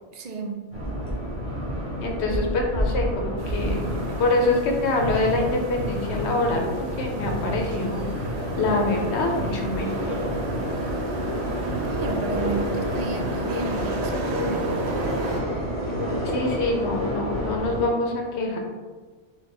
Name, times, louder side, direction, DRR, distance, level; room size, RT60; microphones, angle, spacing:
voice 1, 0.1-0.8 2.3-2.6 11.8-15.0, right 3 dB, 55° right, 3 dB, 0.4 m, -33 dB
sound 1, 0.7-17.8, equal, 35° left, 1.2 m, -29 dB
voice 2, 2.0-3.8 4.2-6.6 7.0-8.3 8.6-10.2 16.2-18.6, left 2 dB, 80° left, 1 dB, 1.0 m, -25 dB
sound 2, 3.4-15.4, right 2 dB, 75° right, 0.9 m, -35 dB
3.4 x 2.5 x 4.0 m, 1.4 s
omnidirectional pair, 1.1 m